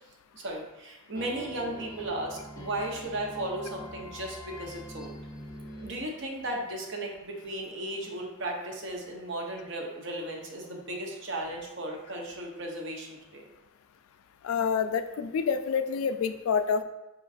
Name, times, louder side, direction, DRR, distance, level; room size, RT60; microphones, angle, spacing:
voice 1, 0.3-5.1 5.8-13.5, right 1 dB, 60° right, 1 dB, 0.8 m, -35 dB
sound 1, 1.1-6.7, left 1 dB, 15° left, 0.5 m, -44 dB
voice 2, 14.4-16.8, left 6 dB, 80° left, 10 dB, 0.3 m, -27 dB
5.0 x 3.9 x 2.4 m, 1.0 s
head